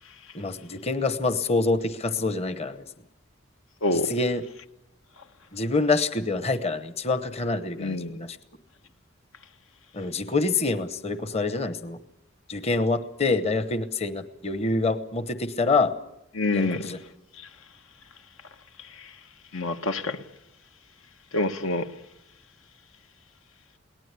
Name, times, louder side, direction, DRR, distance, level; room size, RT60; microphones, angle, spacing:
voice 1, 0.3-2.8 3.9-4.4 5.5-8.4 9.9-12.0 12.5-15.9 16.5-17.0, left 3 dB, 30° left, 1.0 m, -26 dB
voice 2, 3.8-4.1 7.8-8.1 16.3-16.8 19.5-20.2 21.3-21.9, left 2 dB, 80° left, 1.2 m, -26 dB
22.5 x 18.5 x 8.3 m
head